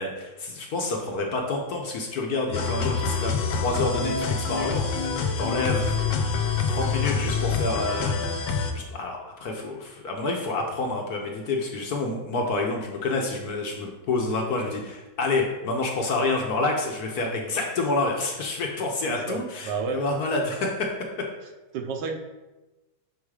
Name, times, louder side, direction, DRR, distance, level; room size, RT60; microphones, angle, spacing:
voice 1, 0.0-4.9 5.4-6.0 6.7-8.2 8.7-20.9, left 3 dB, 60° left, 1 dB, 1.1 m, -28 dB
sound 1, 2.5-8.7, left 5 dB, 75° left, 1.4 m, -26 dB
voice 2, 19.1-20.0 21.7-22.2, right 5 dB, 70° right, 4 dB, 1.2 m, -31 dB
6.3 x 3.6 x 4.8 m, 1.1 s
omnidirectional pair, 2.1 m